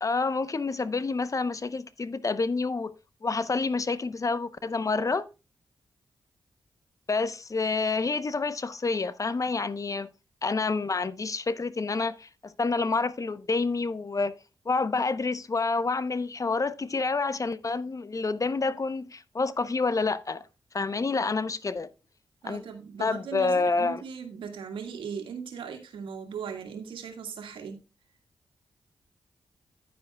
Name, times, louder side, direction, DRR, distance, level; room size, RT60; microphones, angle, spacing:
voice 1, 0.0-2.9 3.2-5.3 7.1-10.1 10.4-14.3 14.7-20.4 20.7-21.9 22.4-22.6 23.0-24.0, left 4 dB, 40° left, 0.8 m, -28 dB
voice 2, 22.4-27.8, right 6 dB, 85° right, 1.8 m, -38 dB
10.0 x 9.7 x 2.3 m
supercardioid pair, 45°, 8 cm